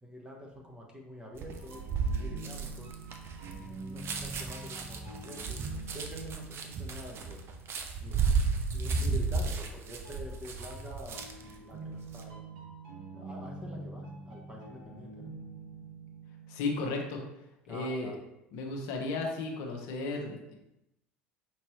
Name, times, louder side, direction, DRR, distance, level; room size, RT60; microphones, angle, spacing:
voice 1, 0.0-1.8 2.1-2.9 3.5-5.6 5.9-7.4 8.0-8.2 8.5-11.3 11.6-12.7 13.2-15.3 17.7-18.2, left 1 dB, 15° right, 0 dB, 1.1 m, -47 dB
sound 1, 1.4-11.5 11.9-12.2, right 4 dB, 40° right, 0.6 m, -33 dB
sound 2, 1.5-8.2 10.0-16.6, right 3 dB, 70° right, 1.3 m, -46 dB
voice 2, 16.5-17.2 17.7-18.1 18.5-20.5, left 3 dB, 60° left, 2 dB, 0.8 m, -34 dB
5.3 x 2.9 x 3.0 m, 0.88 s
hypercardioid pair, 75°, 6 cm